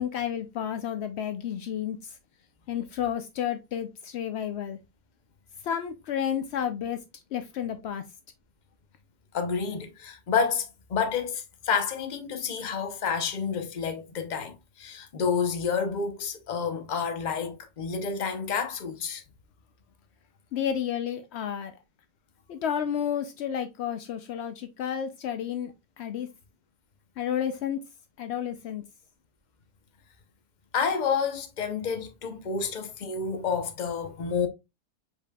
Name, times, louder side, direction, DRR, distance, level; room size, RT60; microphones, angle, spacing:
voice 1, 0.0-2.1 2.7-4.8 5.6-7.0 7.3-8.0 20.5-21.7 22.5-26.3 27.2-27.8 28.2-28.8, left 9 dB, 90° left, 0.5 m, -31 dB
voice 2, 9.3-19.2 30.7-34.5, left 6 dB, 45° left, 0.6 m, -29 dB
5.1 x 4.6 x 2.2 m
omnidirectional pair, 1.7 m